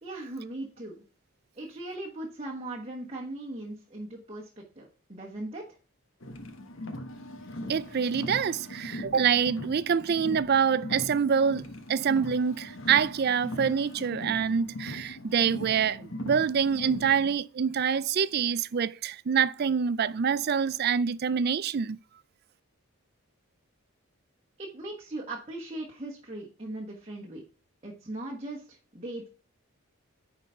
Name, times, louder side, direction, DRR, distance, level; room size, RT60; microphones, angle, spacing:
voice 1, 0.0-1.0 1.5-5.6 24.6-27.4 27.8-29.3, right 2 dB, 30° right, 1.2 m, -39 dB
Car, 6.2-17.3, left 1 dB, 60° left, 1.2 m, -40 dB
voice 2, 7.7-11.6 11.9-22.0, right 7 dB, 45° right, 0.4 m, -26 dB
9.9 x 4.0 x 5.5 m
head